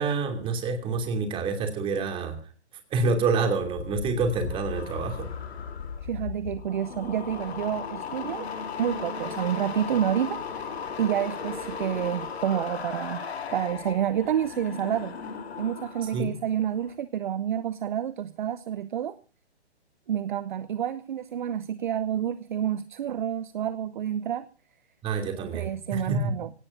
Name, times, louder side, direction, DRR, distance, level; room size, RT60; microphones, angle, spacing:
voice 1, 0.0-2.4 2.9-5.3 16.1-16.3 25.0-26.3, right 4 dB, 15° right, 5 dB, 2.8 m, -27 dB
sound 1, 3.6-16.2 16.5-16.9, left 6 dB, 65° left, 2.9 m, -36 dB
voice 2, 6.0-8.5 8.8-10.7 11.0-15.2 15.6-19.2 20.1-24.5 25.3-26.5, right 10 dB, 45° right, 14 dB, 0.7 m, -29 dB
24.5 x 17.5 x 2.7 m, 0.37 s
hypercardioid pair, 145°, 34 cm